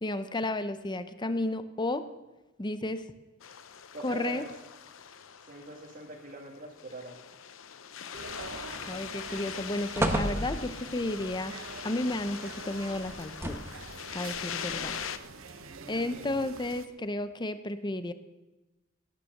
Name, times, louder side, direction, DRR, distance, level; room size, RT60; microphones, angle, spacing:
voice 1, 0.0-2.1 2.6-3.1 4.0-4.4 8.9-11.5 11.8-13.7 14.1-15.0 15.9-18.1, left 2 dB, 25° left, 11 dB, 0.7 m, -32 dB
sound 1, 3.4-15.2, left 8 dB, 75° left, 0.7 m, -42 dB
voice 2, 3.9-4.5 5.4-7.2 15.6-16.4, right 2 dB, 45° right, -1 dB, 1.8 m, -44 dB
sound 2, 8.1-16.9, right 4 dB, 90° right, 1.0 m, -46 dB
sound 3, 8.4-8.9 9.3-9.5 9.9-11.0 13.1-13.9 14.7-14.8, right 1 dB, 15° right, 1.2 m, -32 dB
18.0 x 10.0 x 6.6 m, 1.1 s
head